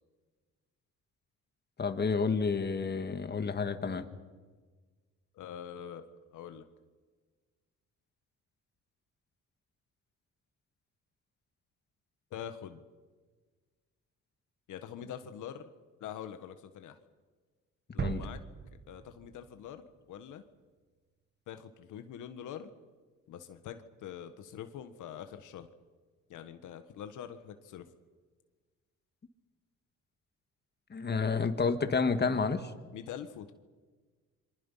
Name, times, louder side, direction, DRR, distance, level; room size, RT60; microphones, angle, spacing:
voice 1, 1.8-4.1 18.0-18.2 30.9-32.7, left 5 dB, 35° left, 8 dB, 2.0 m, -30 dB
voice 2, 5.3-6.0 6.3-6.6 12.3-12.8 14.7-15.7 16.0-17.0 17.9-18.4 18.9-20.4 21.5-22.7 23.3-25.7 26.3-27.9 32.9-33.5, left 9 dB, 80° left, 9 dB, 1.5 m, -44 dB
sound 1, 18.0-19.9 20.3-20.4, right 6 dB, 35° right, 1.2 m, -39 dB
27.0 x 24.5 x 5.7 m, 1.4 s
cardioid pair, 90°, 30 cm